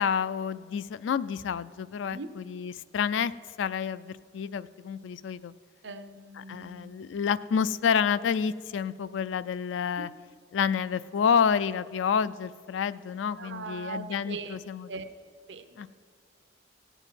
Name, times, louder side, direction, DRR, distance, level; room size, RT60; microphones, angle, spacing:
voice 1, 0.0-3.3 3.6-5.5 6.4-10.1 10.5-14.9 15.8-15.9, left 7 dB, 85° left, 17 dB, 0.3 m, -29 dB
voice 2, 5.8-6.9 9.9-10.1 13.4-14.6 14.9-15.0 15.5-15.9, right 4 dB, 75° right, 10 dB, 0.7 m, -40 dB
17.0 x 7.1 x 5.7 m, 2.1 s
head